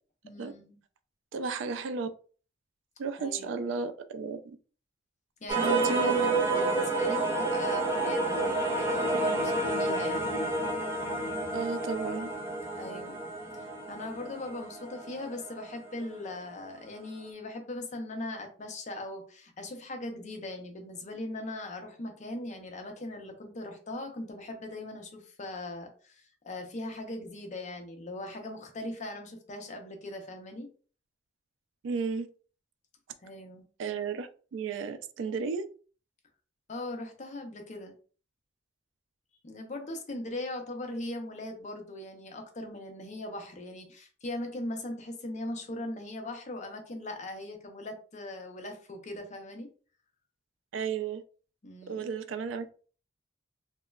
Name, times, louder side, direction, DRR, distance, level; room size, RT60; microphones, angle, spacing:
voice 1, 0.2-0.8 3.2-3.7 5.4-10.3 12.8-13.2 13.5-30.7 33.2-33.6 36.7-37.9 39.4-49.7 51.6-52.0, left 2 dB, 40° left, 4 dB, 0.5 m, -39 dB
voice 2, 1.3-2.1 3.0-4.6 5.6-6.5 11.5-12.3 31.8-32.3 33.8-35.6 50.7-51.2 51.9-52.7, right 5 dB, 85° right, 11 dB, 0.3 m, -33 dB
sound 1, 5.5-16.3, right 2 dB, 15° right, 0.5 m, -30 dB
2.9 x 2.1 x 2.2 m, 0.39 s
head